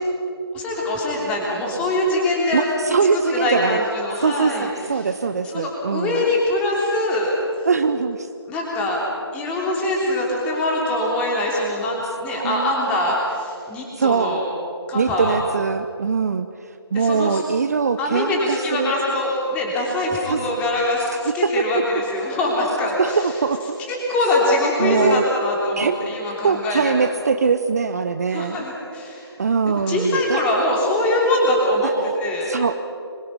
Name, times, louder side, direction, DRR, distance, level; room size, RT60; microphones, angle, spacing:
voice 1, 0.5-2.6 3.3-4.7 5.0-5.1 5.5-7.3 8.5-9.0 9.3-14.4 14.9-15.4 16.9-17.4 18.0-23.3 23.9-26.9 28.3-29.3 29.6-31.9 32.2-32.5, left 1 dB, 10° left, -3 dB, 3.3 m, -23 dB
voice 2, 2.5-3.8 4.2-6.2 7.7-8.3 12.3-12.7 13.0-13.2 14.0-14.4 14.9-18.9 20.3-20.5 21.2-21.6 23.0-23.8 24.8-25.2 25.8-26.0 26.4-28.6 29.4-30.4 31.8-31.9 32.5-32.8, right 5 dB, 35° right, 9 dB, 0.7 m, -22 dB
26.0 x 23.0 x 5.5 m, 2.6 s
figure-of-eight pair, 155°, 14 cm